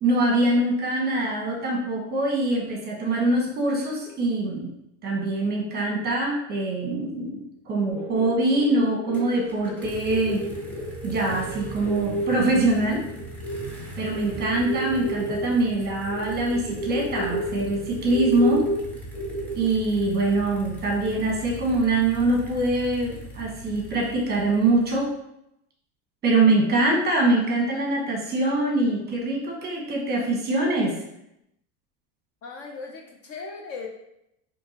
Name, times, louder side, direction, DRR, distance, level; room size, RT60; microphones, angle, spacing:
voice 1, 0.0-4.7 5.0-10.4 11.0-13.0 14.0-18.7 19.6-25.1 26.2-31.0, right 2 dB, 25° right, -1 dB, 1.1 m, -24 dB
sound 1, 7.9-13.6 14.0-19.9, right 1 dB, 75° left, 1.5 m, -31 dB
sound 2, 9.1-25.1, right 1 dB, 5° left, 0.8 m, -40 dB
voice 2, 32.4-33.9, left 4 dB, 40° left, 1 dB, 0.6 m, -37 dB
4.4 x 2.9 x 2.8 m, 0.81 s
supercardioid pair, 135°, 36 cm